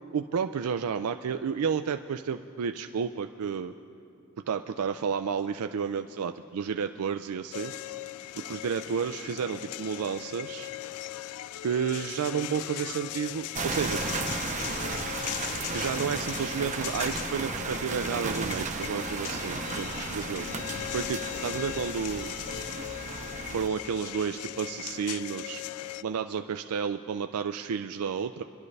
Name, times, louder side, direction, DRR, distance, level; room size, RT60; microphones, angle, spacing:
voice 1, 0.1-3.7 4.4-7.7 8.4-10.7 11.6-14.0 15.7-20.5 20.9-22.3 23.5-25.6 26.0-28.4, right 6 dB, 80° right, 8 dB, 0.4 m, -31 dB
sound 1, 7.5-26.0, left 13 dB, 80° left, 0.3 m, -38 dB
sound 2, 13.5-23.7, right 4 dB, 35° right, 0.6 m, -34 dB
25.0 x 12.0 x 3.3 m, 2.6 s
head